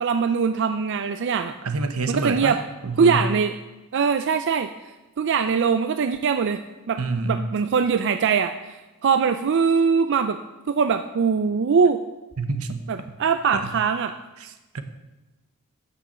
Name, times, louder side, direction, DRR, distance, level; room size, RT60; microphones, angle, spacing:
voice 1, 0.0-1.6 2.1-2.6 3.0-3.5 3.9-4.7 5.2-6.6 6.9-7.0 7.3-10.4 10.7-12.0 12.9-14.1, right 6 dB, 55° right, 9 dB, 0.4 m, -22 dB
voice 2, 1.6-2.6 2.8-3.2 7.0-7.6 12.4-12.8 13.5-13.7 14.4-14.8, right 3 dB, 80° right, 9 dB, 1.0 m, -27 dB
9.0 x 7.0 x 7.5 m, 1.1 s
head